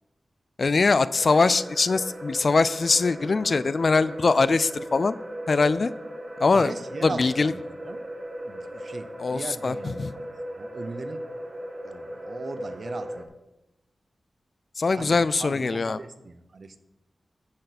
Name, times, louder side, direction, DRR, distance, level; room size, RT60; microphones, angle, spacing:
voice 1, 0.6-5.2 5.5-5.9 6.4-6.7 7.0-7.5 9.2-9.7 10.0-10.1 14.8-16.0, left 4 dB, 50° left, 16 dB, 0.4 m, -22 dB
sound 1, 1.2-13.3, equal, 30° right, 1.3 m, -37 dB
voice 2, 6.5-8.0 8.4-10.3 10.6-11.3 11.8-13.3 14.9-16.8, right 3 dB, 55° right, 10 dB, 0.8 m, -39 dB
14.5 x 6.6 x 4.2 m, 0.94 s
wide cardioid pair, 110°, 0 cm